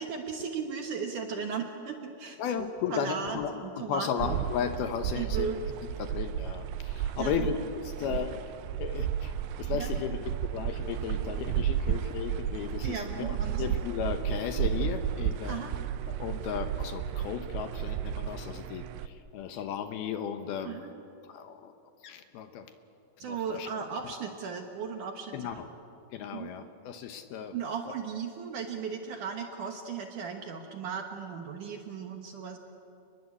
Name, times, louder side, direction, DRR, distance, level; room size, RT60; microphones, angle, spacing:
voice 1, 0.0-2.4 2.9-4.4 5.2-5.6 7.2-7.5 9.7-9.9 12.8-13.6 15.5-15.7 20.6-20.9 23.2-25.5 26.3-26.5 27.5-32.6, right 6 dB, 60° right, 4 dB, 2.3 m, -36 dB
voice 2, 2.4-5.5 6.0-8.4 8.8-15.7 16.1-20.8 21.3-21.7 22.0-22.7 23.2-23.7 25.3-25.7 26.1-27.6, left 7 dB, 70° left, 8 dB, 2.7 m, -35 dB
sound 1, 4.2-19.1, right 9 dB, 90° right, 3.1 m, -33 dB
29.5 x 21.0 x 8.4 m, 2.7 s
omnidirectional pair, 5.0 m